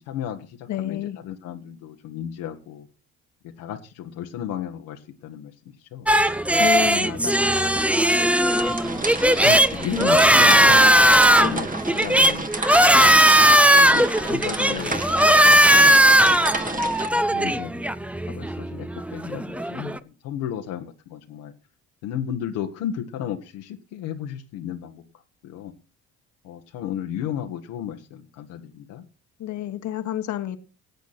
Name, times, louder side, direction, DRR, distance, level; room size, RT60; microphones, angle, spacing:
voice 1, 0.0-2.9 3.4-6.1 8.5-10.9 11.3-12.8 13.1-16.4 17.3-18.0 18.3-21.5 22.0-25.0 25.4-25.7 26.4-29.0, left 10 dB, 80° left, 1.4 m, -34 dB
voice 2, 0.7-1.2 6.6-7.5 29.4-30.6, left 11 dB, 65° left, 1.5 m, -29 dB
sound 1, 6.1-20.0, right 1 dB, 5° right, 0.8 m, -18 dB
sound 2, 8.3-17.1, right 2 dB, 25° right, 1.8 m, -31 dB
17.5 x 8.3 x 4.3 m
supercardioid pair, 65°, 31 cm